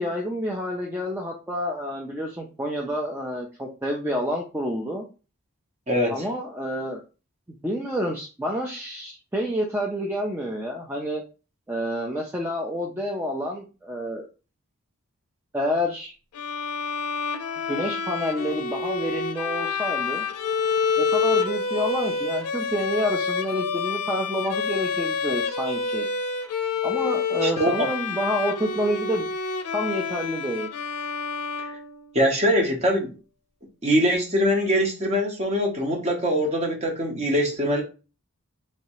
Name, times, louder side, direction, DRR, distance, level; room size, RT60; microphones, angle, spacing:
voice 1, 0.0-5.1 6.1-7.0 7.6-11.2 11.7-14.3 15.5-16.1 17.7-20.3 21.0-26.1 26.8-29.3 29.7-30.7, equal, 10° right, 0 dB, 0.3 m, -28 dB
voice 2, 5.9-6.2 27.4-27.9 32.1-33.2 33.8-37.8, equal, 30° right, 1 dB, 0.7 m, -23 dB
Bowed string instrument, 16.3-32.4, left 5 dB, 90° left, 0.5 m, -28 dB
3.1 x 2.8 x 3.0 m, 0.33 s
head